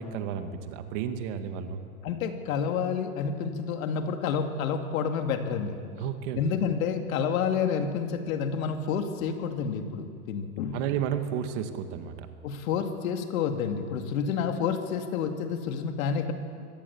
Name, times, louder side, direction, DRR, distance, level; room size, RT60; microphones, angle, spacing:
voice 1, 0.0-1.8 6.0-6.4 10.7-12.3, right 9 dB, 50° right, 8 dB, 2.0 m, -32 dB
voice 2, 2.0-5.8 6.4-10.8 12.4-16.3, left 6 dB, 65° left, 6 dB, 2.5 m, -29 dB
24.5 x 18.0 x 7.2 m, 2.2 s
supercardioid pair, 145°, 44 cm